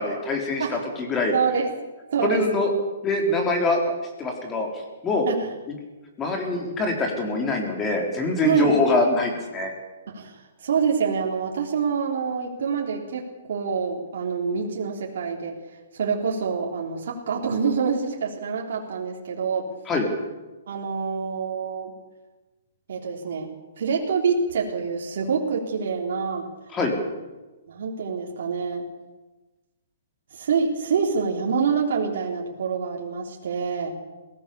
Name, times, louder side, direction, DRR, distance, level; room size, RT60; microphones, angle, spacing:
voice 1, 0.0-1.3 2.2-2.7 3.0-3.9 4.2-4.7 5.0-5.3 6.2-9.7 19.9-20.1 26.7-26.9, left 3 dB, 15° left, 2 dB, 4.0 m, -24 dB
voice 2, 1.3-1.7 2.1-2.4 5.3-5.5 8.4-8.7 10.1-15.6 15.9-19.7 20.7-21.9 22.9-23.5 23.8-26.5 27.7-28.8 30.3-33.9, right 5 dB, 65° right, -1 dB, 3.7 m, -26 dB
22.0 x 17.0 x 7.0 m, 1.1 s
hypercardioid pair, 160°, 0 cm